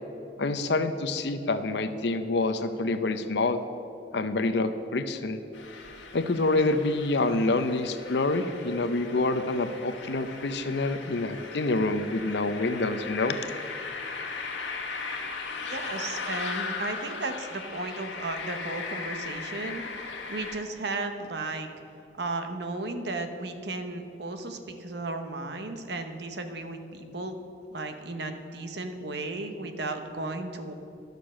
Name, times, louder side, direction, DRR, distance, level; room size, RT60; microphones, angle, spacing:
voice 1, 0.4-3.6 4.1-5.4 6.1-13.4, left 2 dB, 65° left, 10 dB, 0.6 m, -27 dB
sound 1, 5.5-20.6, left 4 dB, 85° left, 1.6 m, -38 dB
voice 2, 15.7-19.8 20.3-21.7 22.2-27.4 27.7-30.7, right 2 dB, 65° right, 7 dB, 0.9 m, -34 dB
12.0 x 6.7 x 6.3 m, 2.8 s
head